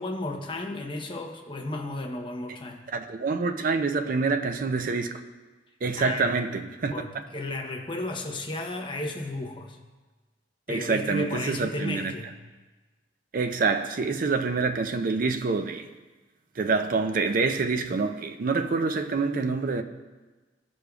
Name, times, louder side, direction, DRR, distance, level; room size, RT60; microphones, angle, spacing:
voice 1, 0.0-2.9 5.9-6.4 6.9-9.8 10.7-12.3, left 2 dB, 30° left, 0.8 m, -34 dB
voice 2, 2.9-5.1 5.8-6.9 10.7-12.1 13.3-15.9 16.6-19.8, right 4 dB, 50° right, 0.4 m, -26 dB
14.0 x 5.0 x 2.3 m
head